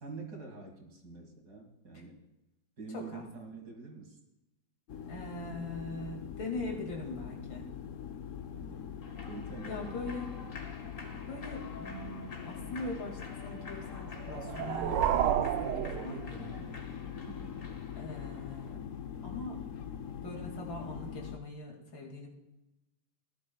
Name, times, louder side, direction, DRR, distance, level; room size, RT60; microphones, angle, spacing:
voice 1, 0.0-2.2 2.8-4.2 8.6-8.8 9.2-10.3 17.3-17.6, right 4 dB, 55° right, 2 dB, 2.4 m, -46 dB
voice 2, 2.9-3.2 5.1-7.7 9.6-10.3 11.3-16.6 18.0-18.8 19.2-19.6 20.2-22.3, left 2 dB, 80° left, 0 dB, 3.0 m, -41 dB
sound 1, 4.9-21.4, left 8 dB, 65° left, 0.8 m, -43 dB
Human voice / Clapping / Cheering, 9.0-18.7, left 3 dB, 35° left, 1.0 m, -50 dB
sound 2, 14.2-16.8, right 10 dB, 75° right, 1.2 m, -31 dB
18.0 x 11.0 x 2.3 m, 0.95 s
omnidirectional pair, 2.1 m